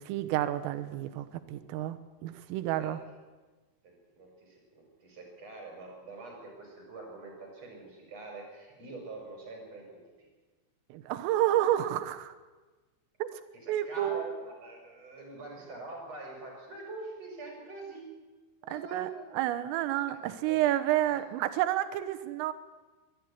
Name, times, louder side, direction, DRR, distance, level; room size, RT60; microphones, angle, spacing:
voice 1, 0.0-3.0 10.9-12.3 13.2-13.4 13.7-14.2 18.7-22.5, right 13 dB, 80° right, 11 dB, 3.6 m, -30 dB
voice 2, 3.8-10.3 13.6-18.1 18.6-19.5 20.2-21.2, right 2 dB, 30° right, 0 dB, 5.9 m, -45 dB
23.0 x 12.5 x 9.6 m, 1.3 s
omnidirectional pair, 6.0 m